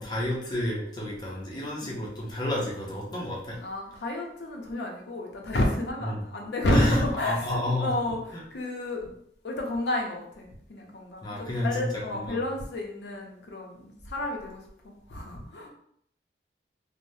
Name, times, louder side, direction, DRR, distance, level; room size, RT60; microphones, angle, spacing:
voice 1, 0.0-3.6 6.1-6.2 6.7-7.9 8.3-8.4 11.2-12.4, left 1 dB, 25° left, -4 dB, 0.5 m, -30 dB
voice 2, 3.6-9.0 9.4-15.7, left 1 dB, 70° left, 1 dB, 0.5 m, -31 dB
3.2 x 2.0 x 2.6 m, 0.68 s
head